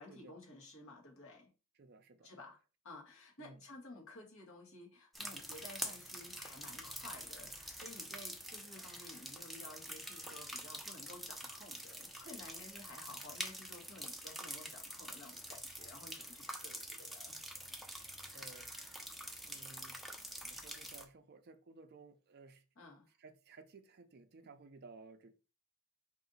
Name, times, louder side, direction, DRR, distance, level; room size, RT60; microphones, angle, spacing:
voice 1, 0.0-1.5 2.2-2.6 2.8-17.4 22.8-23.1, left 2 dB, 70° left, 1.7 m, -54 dB
voice 2, 1.7-2.3 3.4-3.6 18.3-18.8 19.4-20.0 20.4-22.6 23.2-25.3, right 3 dB, 50° right, 0.5 m, -57 dB
sound 1, 5.1-21.0, right 1 dB, ahead, 0.6 m, -46 dB
4.9 x 2.7 x 4.0 m
head